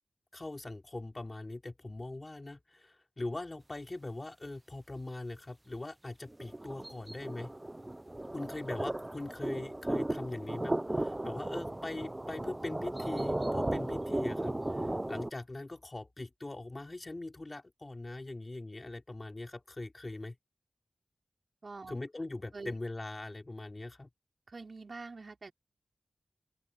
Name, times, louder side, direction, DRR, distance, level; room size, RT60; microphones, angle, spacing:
voice 1, 0.3-7.5 8.3-20.4 21.9-24.1, left 2 dB, 40° left, 3.6 m, -41 dB
sound 1, 6.3-15.3, right 1 dB, 25° right, 1.0 m, -35 dB
voice 2, 21.6-22.0 22.5-22.8 24.5-25.5, right 3 dB, 65° right, 5.2 m, -45 dB
open air
cardioid pair, 50°, 0 cm